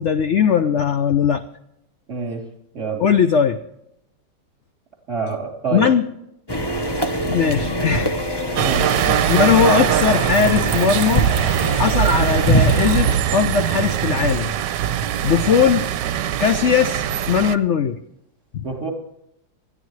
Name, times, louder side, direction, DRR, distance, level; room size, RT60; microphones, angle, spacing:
voice 1, 0.0-1.4 3.0-3.6 5.7-6.0 7.3-8.1 9.0-11.3 11.7-14.5 15.2-15.9 16.4-18.0 18.5-18.6, left 7 dB, 65° left, 9 dB, 0.7 m, -19 dB
voice 2, 2.1-2.4 2.7-3.0 5.1-5.9 8.6-8.9 18.6-18.9, right 4 dB, 40° right, 1 dB, 3.7 m, -26 dB
sound 1, 6.5-13.2, equal, 15° left, 0.9 m, -23 dB
sound 2, 8.6-17.6, right 10 dB, 75° right, 1.3 m, -21 dB
20.0 x 13.5 x 3.2 m, 0.81 s
omnidirectional pair, 2.0 m